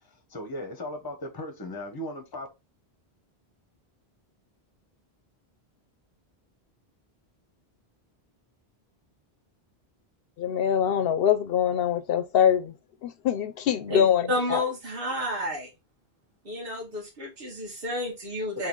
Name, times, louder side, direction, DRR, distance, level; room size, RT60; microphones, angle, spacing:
voice 1, 0.0-2.5 18.6-18.7, left 1 dB, 25° left, 0.7 m, -37 dB
voice 2, 10.4-12.7 13.0-14.6, left 9 dB, 70° left, 0.7 m, -24 dB
voice 3, 13.9-15.7 16.5-18.7, left 1 dB, 60° right, 1.7 m, -31 dB
4.0 x 2.7 x 3.7 m
omnidirectional pair, 1.1 m